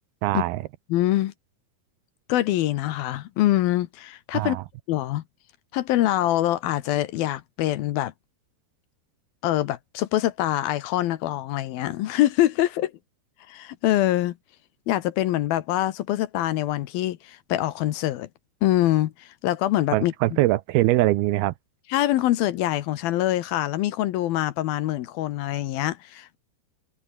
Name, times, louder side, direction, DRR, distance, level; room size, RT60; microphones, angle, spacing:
voice 1, 0.2-0.6 4.3-4.6 19.9-21.5, right 17 dB, 75° right, 2.5 m, -22 dB
voice 2, 0.9-1.3 2.3-4.6 4.9-5.2 5.7-8.1 9.4-12.9 13.5-14.4 14.9-18.3 18.6-20.4 21.9-26.4, left 14 dB, 70° left, 2.6 m, -24 dB
omnidirectional pair, 4.8 m